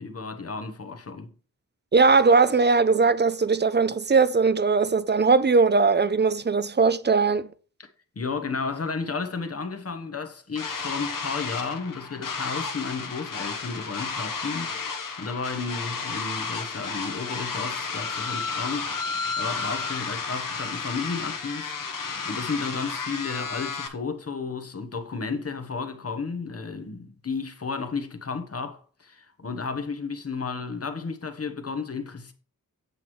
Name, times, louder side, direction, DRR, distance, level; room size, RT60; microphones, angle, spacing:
voice 1, 0.0-1.3 7.8-7.9 8.1-32.3, left 4 dB, 45° left, 1.1 m, -33 dB
voice 2, 1.9-7.5, right 4 dB, 30° right, 0.5 m, -20 dB
sound 1, 10.6-23.9, left 5 dB, 70° left, 1.2 m, -32 dB
8.1 x 7.3 x 3.1 m
wide cardioid pair, 75°, 34 cm